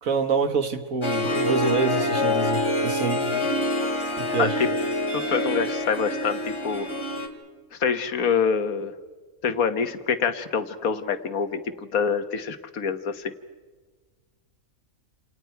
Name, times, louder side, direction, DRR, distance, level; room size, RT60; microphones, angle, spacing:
voice 1, 0.0-3.3 4.2-4.6, right 4 dB, 70° right, 8 dB, 1.9 m, -26 dB
Harp, 1.0-7.3, left 1 dB, 20° left, 2.5 m, -26 dB
voice 2, 5.1-6.9 7.7-8.9 9.4-13.3, left 6 dB, 75° left, 10 dB, 1.6 m, -26 dB
28.5 x 28.5 x 4.6 m, 1.4 s
omnidirectional pair, 1.5 m